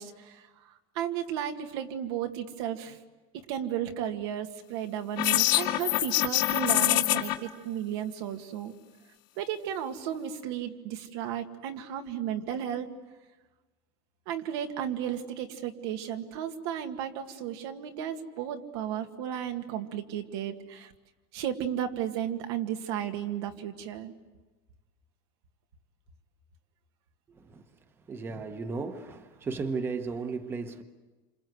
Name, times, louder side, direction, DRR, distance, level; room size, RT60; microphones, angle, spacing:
voice 1, 0.0-3.0 3.3-8.7 9.4-12.9 14.3-20.9 21.3-24.1, right 10 dB, 85° right, 2.1 m, -34 dB
sound 1, 5.2-7.4, left 16 dB, 65° left, 1.7 m, -25 dB
voice 2, 28.1-30.8, right 4 dB, 15° right, 1.0 m, -35 dB
28.0 x 27.0 x 8.0 m
cardioid pair, 170°, 13 cm